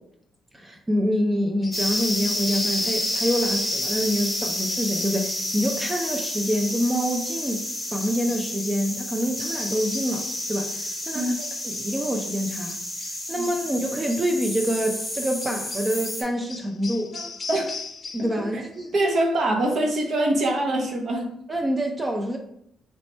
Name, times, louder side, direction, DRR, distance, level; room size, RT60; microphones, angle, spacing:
voice 1, 0.5-11.3 11.6-12.8 13.3-17.2 18.1-18.9 21.5-22.4, equal, 20° right, 2 dB, 0.5 m, -26 dB
sound 1, 1.6-2.9 3.2-3.8 4.7-5.6 8.0-8.9 9.6-10.5 11.4-12.0 12.7-13.7 14.1-14.3 15.4-18.4 18.7-19.2, left 4 dB, 40° left, 0.6 m, -41 dB
sound 2, 1.7-16.2, left 1 dB, 5° left, 1.4 m, -30 dB
voice 2, 17.1-17.7 18.5-18.6 18.9-21.4, right 1 dB, 55° right, 2 dB, 1.0 m, -24 dB
3.2 x 3.0 x 4.2 m, 0.73 s
cardioid pair, 90°, 0 cm